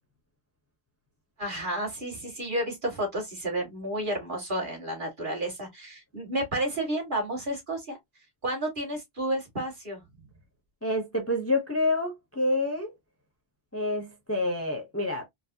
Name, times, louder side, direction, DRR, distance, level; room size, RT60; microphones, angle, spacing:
voice 1, 1.4-8.0 8.4-10.0, right 1 dB, 45° right, 2.2 m, -31 dB
voice 2, 10.8-12.9 13.7-15.3, left 2 dB, 15° left, 0.7 m, -28 dB
4.5 x 2.1 x 2.7 m
omnidirectional pair, 1.2 m